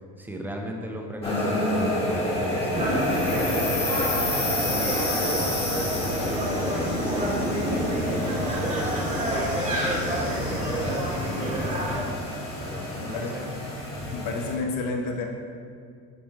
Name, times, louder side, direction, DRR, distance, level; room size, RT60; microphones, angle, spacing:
voice 1, 0.2-6.9 7.4-12.1 12.6-13.4 13.9-14.2, equal, 5° right, 1 dB, 0.8 m, -38 dB
sound 1, 1.2-14.6, left 1 dB, 15° left, 1.4 m, -30 dB
sound 2, 2.7-12.0, equal, 20° right, 1.5 m, -28 dB
voice 2, 13.0-13.4 14.1-15.3, left 3 dB, 65° left, 2 dB, 1.1 m, -30 dB
5.6 x 4.9 x 4.5 m, 2.3 s
supercardioid pair, 110°, 35 cm